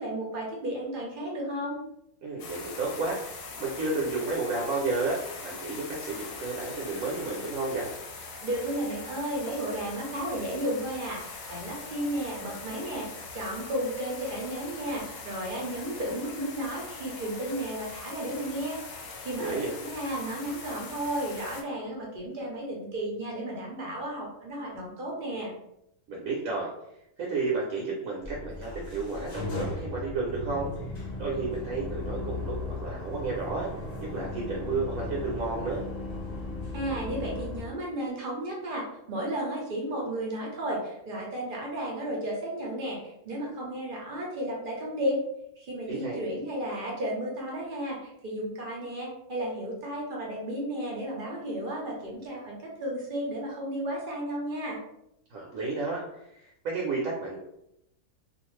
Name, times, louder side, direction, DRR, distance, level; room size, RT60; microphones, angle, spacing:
voice 1, 0.0-1.8 8.4-19.6 19.8-25.5 36.7-45.2 45.6-54.8, right 1 dB, 50° right, -2 dB, 0.7 m, -33 dB
voice 2, 2.2-7.9 19.4-19.7 26.1-26.7 27.2-30.9 31.2-32.5 32.8-33.7 34.1-35.8 45.9-46.2 55.3-56.0 56.3-57.4, right 3 dB, 70° right, -3 dB, 1.0 m, -32 dB
sound 1, 2.4-21.6, left 4 dB, 65° left, 0.9 m, -42 dB
sound 2, 28.2-37.6, left 2 dB, 50° left, 0.5 m, -37 dB
2.5 x 2.4 x 3.1 m, 0.80 s
omnidirectional pair, 1.6 m